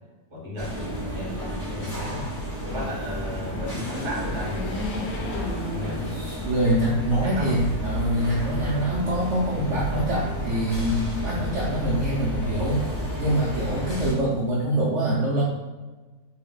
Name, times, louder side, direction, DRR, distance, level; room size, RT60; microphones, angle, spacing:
voice 1, 0.3-2.3 2.6-5.0 5.7-6.1 7.1-7.6, left 1 dB, 20° right, -5 dB, 1.0 m, -35 dB
sound 1, 0.6-14.1, equal, 15° left, 1.2 m, -31 dB
sound 2, 3.2-6.7 7.2-7.3 8.4-9.1, left 2 dB, 65° left, 1.0 m, -35 dB
voice 2, 6.4-12.8 13.2-15.4, right 1 dB, 60° right, -5 dB, 0.9 m, -24 dB
3.6 x 2.6 x 3.6 m, 1.3 s
omnidirectional pair, 1.6 m